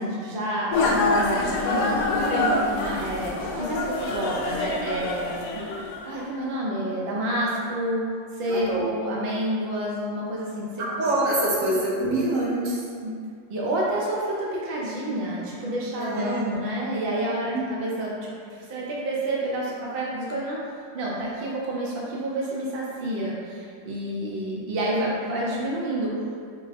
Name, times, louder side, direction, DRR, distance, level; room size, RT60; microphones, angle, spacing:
voice 1, 0.0-5.3 6.0-8.0 8.3-10.9 11.7-11.8 13.0-13.1 13.5-20.6 20.9-26.1, right 1 dB, 90° right, -5 dB, 0.5 m, -29 dB
sound 1, 0.7-6.3, left 2 dB, 70° left, 1.0 m, -26 dB
voice 2, 8.5-8.9 10.8-12.8 15.9-16.5 17.5-17.6, right 1 dB, 60° right, -5 dB, 1.0 m, -25 dB
4.6 x 2.0 x 4.2 m, 2.2 s
omnidirectional pair, 2.0 m